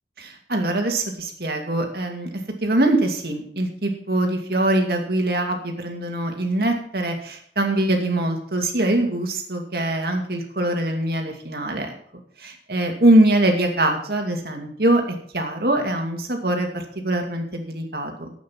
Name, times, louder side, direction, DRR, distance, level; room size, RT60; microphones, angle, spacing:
voice 1, 0.2-2.3 2.6-11.9 12.4-18.3, right 1 dB, 60° right, 3 dB, 2.4 m, -23 dB
12.0 x 8.6 x 6.0 m, 0.62 s
head